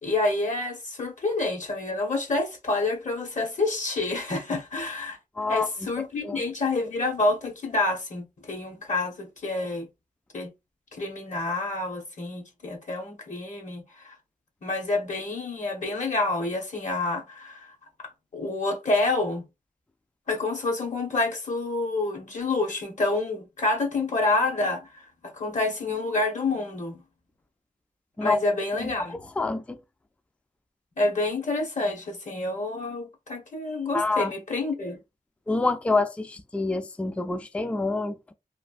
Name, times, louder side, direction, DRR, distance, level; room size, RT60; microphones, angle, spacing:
voice 1, 0.0-5.2 5.5-9.9 10.3-10.5 10.9-14.2 14.6-17.7 18.0-19.4 20.3-25.1 25.3-27.0 28.2-29.1 31.0-35.0, left 2 dB, 55° left, 1.2 m, -28 dB
voice 2, 5.4-5.7 6.2-6.4 28.2-28.4 28.8-29.8 33.9-34.3 35.5-38.3, left 3 dB, 10° left, 0.3 m, -27 dB
3.2 x 2.5 x 2.5 m
wide cardioid pair, 95°, 15 cm